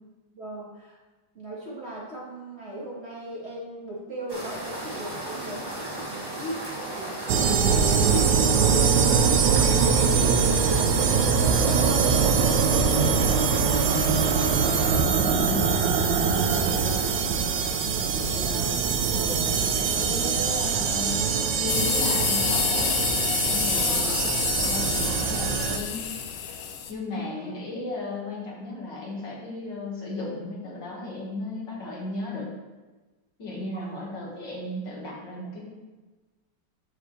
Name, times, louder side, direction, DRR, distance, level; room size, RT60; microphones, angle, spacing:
voice 1, 0.3-1.0 1.3-10.9 11.6-13.7 16.5-17.2 23.8-24.2 27.1-27.5 33.7-34.0, right 1 dB, 35° right, -6 dB, 2.0 m, -38 dB
sound 1, 4.3-14.9, right 1 dB, 15° right, 1.3 m, -35 dB
sound 2, 7.3-25.8, right 6 dB, 70° right, 1.4 m, -23 dB
voice 2, 14.5-15.7 16.6-16.9 18.0-18.8 19.1-21.3 21.5-23.0 23.5-26.0 26.9-32.5 33.4-35.7, left 2 dB, 70° left, -5 dB, 2.6 m, -35 dB
sound 3, 21.7-26.9, left 7 dB, 85° left, 1.5 m, -28 dB
12.5 x 4.8 x 3.3 m, 1.2 s
omnidirectional pair, 2.1 m